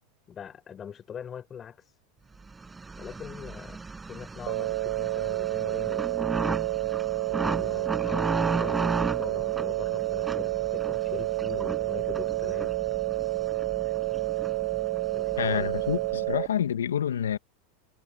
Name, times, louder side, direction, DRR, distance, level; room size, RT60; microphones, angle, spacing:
voice 1, 0.3-2.0 3.0-3.8 4.1-6.7 7.3-12.8 15.1-15.7, left 8 dB, 30° left, 4.2 m, -42 dB
sound 1, 2.5-16.4, right 3 dB, 15° right, 5.2 m, -35 dB
sound 2, 4.5-16.5, right 21 dB, 65° right, 2.4 m, -29 dB
voice 2, 15.4-17.4, left 9 dB, 85° left, 1.6 m, -28 dB
hypercardioid pair, 95°, 0 cm